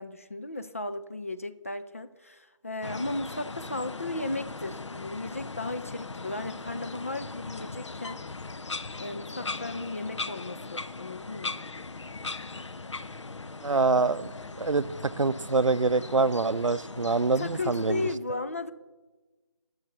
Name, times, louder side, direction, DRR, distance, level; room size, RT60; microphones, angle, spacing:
voice 1, 0.0-8.2 9.0-11.5 17.2-18.7, left 2 dB, 30° left, 9 dB, 0.3 m, -35 dB
sound 1, 2.8-18.2, left 3 dB, 70° left, 0.6 m, -39 dB
voice 2, 13.6-14.3 14.6-14.8 15.2-18.0, right 3 dB, 85° right, 16 dB, 0.5 m, -25 dB
12.0 x 6.5 x 7.0 m, 1.2 s
figure-of-eight pair, 155°, 16 cm